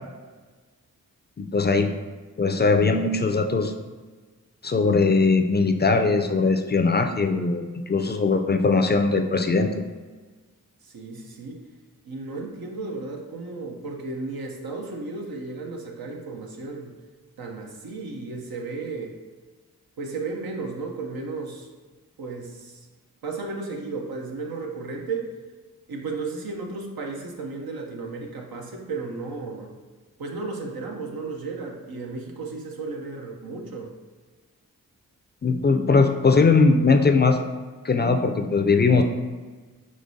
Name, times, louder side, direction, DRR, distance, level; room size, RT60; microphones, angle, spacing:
voice 1, 1.4-1.9 2.4-3.7 4.6-9.9 35.4-37.4 37.8-39.0, left 4 dB, 30° left, 5 dB, 0.4 m, -20 dB
voice 2, 10.8-11.6 12.0-16.9 17.4-19.2 20.0-21.7 22.2-22.9 23.2-25.3 25.9-29.7 30.2-33.9, right 3 dB, 85° right, 1 dB, 0.7 m, -34 dB
5.1 x 3.1 x 2.6 m, 1.3 s
cardioid pair, 45°, 35 cm